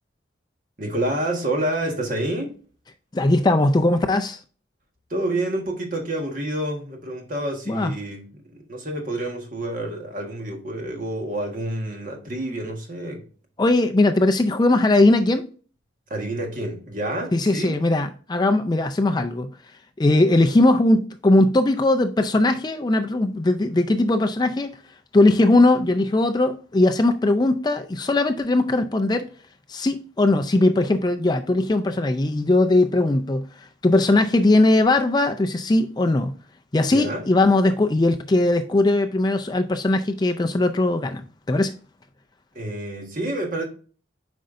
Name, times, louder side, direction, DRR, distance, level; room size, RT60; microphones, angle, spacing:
voice 1, 0.8-2.6 5.1-8.3 8.5-13.2 16.1-17.8 36.9-37.2 42.5-43.7, right 1 dB, 45° right, 1.5 m, -28 dB
voice 2, 3.1-4.4 7.7-7.9 13.6-15.5 17.3-19.5 20.0-24.7 25.1-29.3 29.7-36.3 36.7-41.7, left 2 dB, 20° left, 0.4 m, -19 dB
7.7 x 5.2 x 2.5 m
head